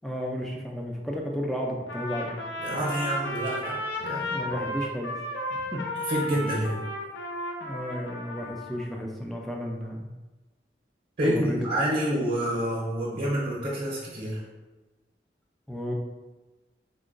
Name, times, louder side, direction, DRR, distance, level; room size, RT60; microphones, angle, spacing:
voice 1, 0.0-2.4 2.7-2.9 4.2-5.1 5.5-5.8 7.6-10.1 11.2-11.7 15.7-15.9, equal, ahead, -1 dB, 0.3 m, -33 dB
Trumpet, 1.9-8.8, left 1 dB, 80° left, 0.5 m, -34 dB
voice 2, 2.6-4.3 6.1-6.8 11.2-14.4, right 1 dB, 50° right, -5 dB, 0.7 m, -28 dB
3.7 x 2.1 x 2.5 m, 1.2 s
head